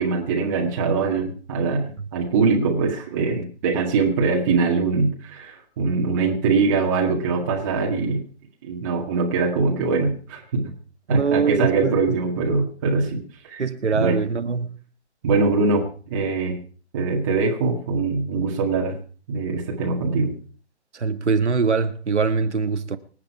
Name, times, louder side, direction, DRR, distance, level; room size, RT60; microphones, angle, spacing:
voice 1, 0.0-8.2 8.6-10.7 11.1-13.6 13.9-14.2 15.2-16.6 16.9-19.0 19.3-20.3, right 4 dB, 15° right, 2.0 m, -22 dB
voice 2, 11.1-12.2 13.6-14.8 20.9-23.0, right 5 dB, 90° right, 1.8 m, -23 dB
25.5 x 8.6 x 4.7 m
hypercardioid pair, 175°, 34 cm